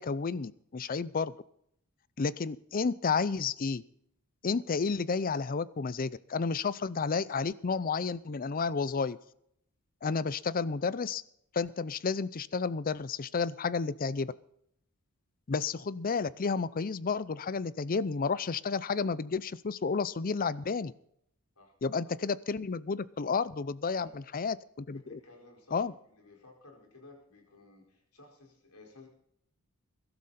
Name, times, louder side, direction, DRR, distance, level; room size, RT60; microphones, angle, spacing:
voice 1, 0.0-1.3 2.2-3.8 4.4-9.2 10.0-11.2 11.5-14.3 15.5-20.9 21.8-25.2 25.7-25.9, left 5 dB, 40° left, 18 dB, 0.5 m, -31 dB
voice 2, 23.9-24.2 24.9-29.1, left 3 dB, 85° left, 1 dB, 4.9 m, -56 dB
22.0 x 12.5 x 4.2 m, 0.72 s
head